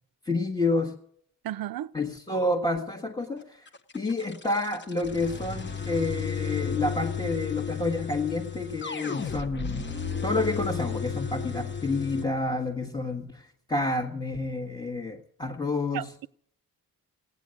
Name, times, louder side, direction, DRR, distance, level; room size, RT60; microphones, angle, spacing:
voice 1, 0.2-0.9 1.9-3.7 3.9-9.9 10.2-16.1, left 2 dB, 15° left, 1.3 m, -29 dB
voice 2, 1.4-1.9 15.9-16.3, right 13 dB, 85° right, 0.6 m, -34 dB
sound 1, 3.7-12.2, left 6 dB, 30° left, 1.0 m, -33 dB
17.5 x 9.7 x 7.6 m
wide cardioid pair, 155°, 34 cm